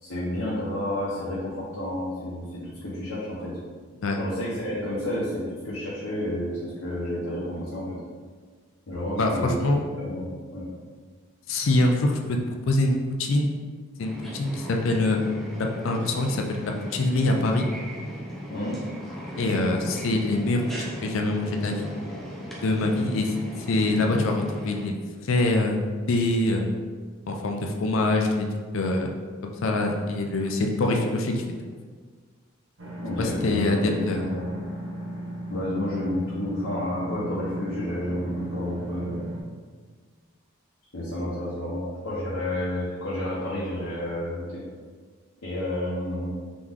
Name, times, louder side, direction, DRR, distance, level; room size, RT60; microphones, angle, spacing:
voice 1, 0.0-3.5 4.2-7.9 8.9-9.6 10.0-10.7 18.5-18.7 30.8-31.0 33.0-34.5 35.5-39.2 40.9-44.6 45.4-46.3, left 1 dB, 90° left, -8 dB, 0.9 m, -30 dB
voice 2, 9.2-9.8 11.5-13.5 14.0-15.2 15.8-17.7 19.4-21.9 22.6-23.3 23.7-25.0 25.2-25.8 26.1-26.7 27.3-28.5 28.7-29.1 29.4-31.3 33.2-34.3, left 2 dB, 70° left, 2 dB, 0.4 m, -24 dB
sound 1, 14.0-24.9, equal, ahead, 0.6 m, -38 dB
sound 2, 32.8-39.4, right 1 dB, 70° right, 0.8 m, -35 dB
3.8 x 3.0 x 3.6 m, 1.5 s
head